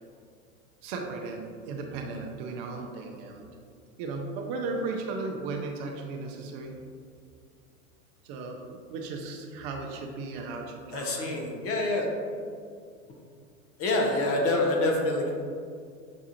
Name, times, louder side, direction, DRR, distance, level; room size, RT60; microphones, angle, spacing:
voice 1, 0.8-3.5 4.0-6.7 8.2-11.4, right 3 dB, 45° right, 2 dB, 0.5 m, -36 dB
voice 2, 10.9-12.1 13.8-15.3, left 2 dB, 35° left, 0 dB, 0.7 m, -26 dB
6.1 x 2.3 x 2.8 m, 2.2 s
hypercardioid pair, 100°, 41 cm